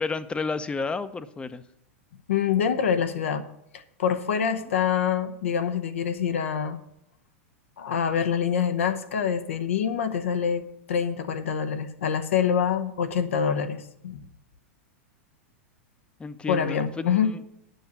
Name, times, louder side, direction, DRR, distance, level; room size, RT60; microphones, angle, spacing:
voice 1, 0.0-1.6 16.2-17.4, left 4 dB, 15° left, 13 dB, 0.6 m, -31 dB
voice 2, 2.3-3.4 3.7-6.8 7.8-14.2 16.5-17.3, left 7 dB, 75° left, 9 dB, 0.9 m, -26 dB
9.3 x 5.7 x 8.2 m, 0.78 s
hypercardioid pair, 100°, 7 cm